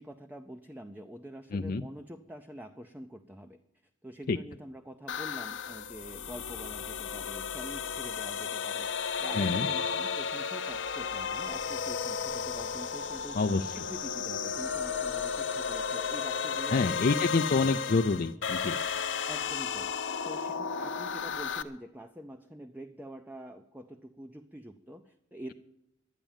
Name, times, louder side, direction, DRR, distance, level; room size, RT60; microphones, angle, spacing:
voice 1, 0.0-3.6 4.0-13.4 13.7-17.2 17.6-17.7 19.3-19.9 20.2-25.5, equal, 10° right, 6 dB, 0.5 m, -46 dB
voice 2, 1.5-1.8 4.3-4.4 9.3-9.7 13.3-13.7 16.7-18.8, left 3 dB, 45° left, 7 dB, 0.5 m, -27 dB
sound 1, 5.1-21.6, left 6 dB, 70° left, 0.9 m, -34 dB
11.5 x 10.0 x 9.0 m, 0.82 s
head